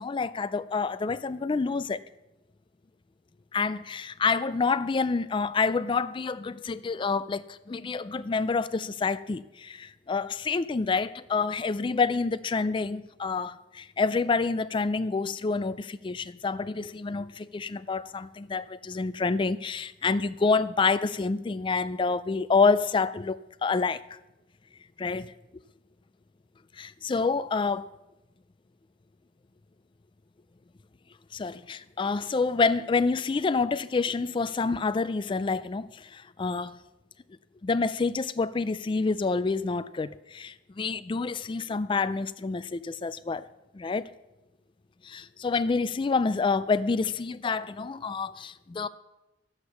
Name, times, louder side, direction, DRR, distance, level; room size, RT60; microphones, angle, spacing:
voice 1, 0.0-2.0 3.5-24.0 25.0-25.3 26.8-27.9 31.3-36.7 37.6-43.5 43.7-44.0 45.0-48.9, left 4 dB, 25° left, 0.3 m, -28 dB
11.5 x 8.0 x 7.0 m
head